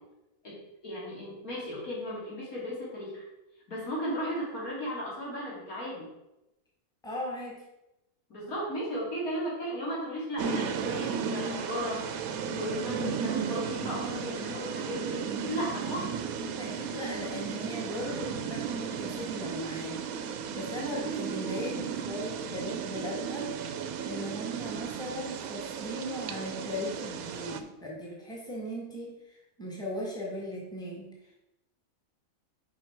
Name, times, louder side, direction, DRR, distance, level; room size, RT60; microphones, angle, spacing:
voice 1, 0.8-3.2 3.7-6.1 8.3-12.0 12.5-16.1, equal, 85° left, -5 dB, 3.2 m, -35 dB
voice 2, 7.0-7.6 16.6-23.6 24.0-31.1, left 1 dB, 5° left, -3 dB, 1.8 m, -38 dB
sound 1, 10.4-27.6, right 7 dB, 85° right, 1.1 m, -35 dB
7.4 x 5.2 x 4.6 m, 0.91 s
omnidirectional pair, 1.5 m